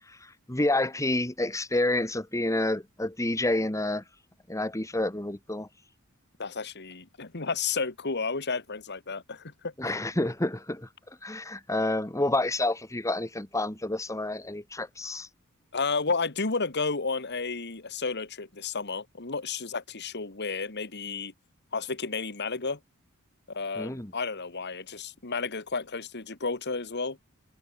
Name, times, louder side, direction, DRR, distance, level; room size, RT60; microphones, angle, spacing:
voice 1, 0.1-4.0 4.5-5.7 9.8-10.9 11.2-15.3 23.8-24.1, left 2 dB, 15° left, 1.9 m, -29 dB
voice 2, 6.4-9.7 15.7-21.3 21.7-22.8 23.5-27.2, left 4 dB, 55° left, 2.1 m, -32 dB
head